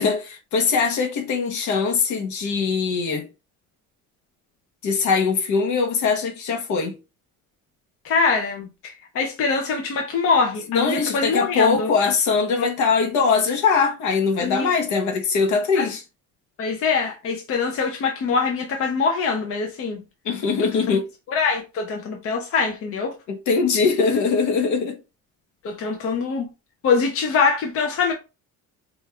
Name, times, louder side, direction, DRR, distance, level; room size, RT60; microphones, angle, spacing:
voice 1, 0.0-3.3 4.8-6.9 10.7-16.0 20.2-21.0 23.3-25.0, left 5 dB, 60° left, 1.1 m, -21 dB
voice 2, 8.0-11.9 12.6-12.7 14.4-14.7 15.8-15.9 16.6-20.0 20.6-20.8 21.3-23.1 25.6-26.5 26.8-28.1, left 5 dB, 45° left, 0.7 m, -23 dB
5.2 x 2.4 x 3.2 m
cardioid pair, 170°, 33 cm